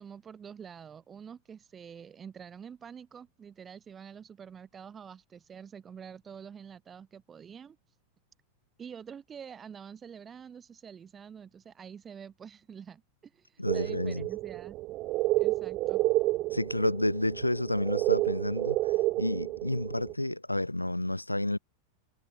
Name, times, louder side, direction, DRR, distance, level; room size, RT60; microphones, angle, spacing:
voice 1, 0.0-7.8 8.8-13.5 13.7-14.8 15.4-16.0, right 7 dB, 20° right, 2.5 m, -47 dB
voice 2, 13.6-14.3 16.5-21.6, left 1 dB, 85° left, 0.4 m, -30 dB
sound 1, 13.7-20.1, right 18 dB, 40° right, 0.5 m, -30 dB
figure-of-eight pair, 90°, 0 cm